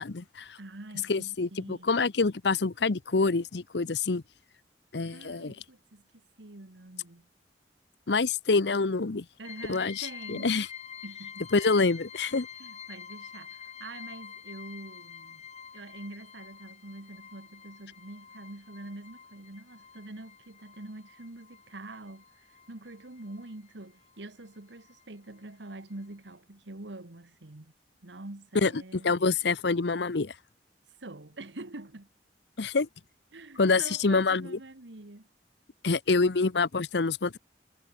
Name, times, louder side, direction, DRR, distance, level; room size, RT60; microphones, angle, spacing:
voice 1, 0.0-0.6 1.1-4.2 4.9-5.5 8.1-9.2 9.7-10.7 11.5-12.5 28.5-30.3 32.6-32.9 33.6-34.6 35.8-37.4, left 4 dB, 70° left, 0.8 m, -26 dB
voice 2, 0.6-1.9 5.1-6.0 6.4-7.3 9.4-10.5 11.0-11.5 12.6-15.4 15.7-27.7 28.0-29.2 31.0-32.1 33.3-35.3, right 2 dB, 85° right, 1.7 m, -45 dB
sound 1, 9.4-23.7 24.0-25.1 25.4-25.5 25.9-26.0, left 7 dB, 40° left, 3.1 m, -48 dB
head